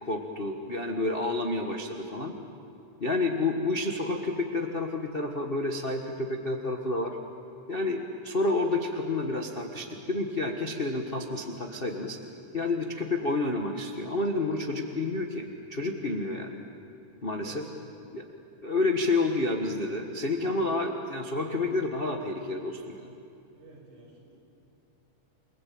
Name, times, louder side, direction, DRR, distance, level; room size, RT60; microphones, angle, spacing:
voice 1, 0.0-2.3 3.0-7.2 7.7-12.2 12.5-16.6 17.2-17.5 18.1-18.2 18.6-23.1, left 2 dB, 55° left, 2 dB, 0.6 m, -29 dB
voice 2, 17.3-17.9 23.5-24.4, right 2 dB, 75° right, -3 dB, 8.3 m, -51 dB
29.5 x 20.5 x 8.7 m, 2.7 s
omnidirectional pair, 3.6 m